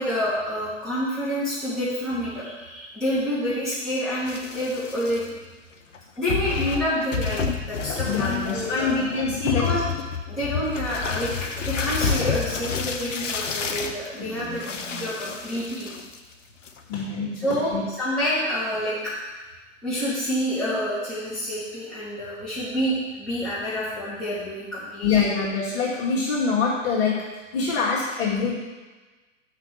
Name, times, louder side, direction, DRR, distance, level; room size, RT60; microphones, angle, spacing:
voice 1, 0.0-5.3 6.2-9.0 9.6-9.8 10.2-14.6 14.9-15.9 17.4-19.4 19.8-25.1, equal, ahead, -13 dB, 3.0 m, -28 dB
sound 1, 4.3-5.2 5.9-6.0 6.3-16.3 16.7-17.0, left 6 dB, 70° left, 0.9 m, -30 dB
voice 2, 8.1-9.7 14.2-15.0 16.9-17.9 20.7-20.8 25.0-27.3 27.5-28.6, left 5 dB, 50° left, -8 dB, 2.3 m, -25 dB
6.2 x 5.7 x 7.1 m, 1.2 s
figure-of-eight pair, 105°, 38 cm